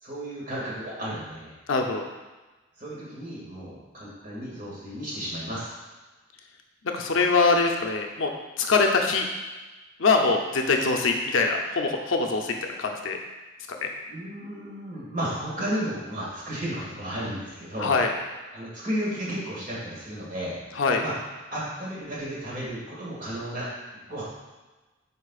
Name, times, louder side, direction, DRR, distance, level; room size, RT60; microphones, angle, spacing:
voice 1, 0.0-1.5 2.8-5.7 14.1-17.9 18.5-20.6 21.0-21.1 21.5-23.7 24.0-24.2, equal, 40° right, -6 dB, 2.1 m, -33 dB
voice 2, 1.7-2.1 6.9-8.3 8.6-9.3 10.0-13.2 13.7-13.9 17.8-18.1 20.8-21.0, left 4 dB, 70° left, 2 dB, 0.7 m, -23 dB
9.9 x 4.4 x 2.4 m, 1.2 s
head